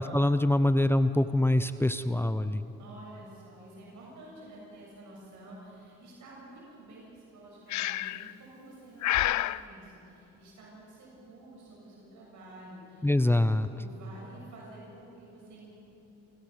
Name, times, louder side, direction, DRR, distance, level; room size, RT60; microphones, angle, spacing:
voice 1, 0.0-2.6 13.0-13.7, left 1 dB, 10° left, 12 dB, 0.7 m, -24 dB
voice 2, 2.8-15.8, right 1 dB, 75° right, -4 dB, 7.4 m, -50 dB
Breathing, 7.7-8.3 9.0-9.6, left 15 dB, 70° left, 0.5 m, -28 dB
30.0 x 15.5 x 7.0 m, 2.9 s
cardioid pair, 90°, 30 cm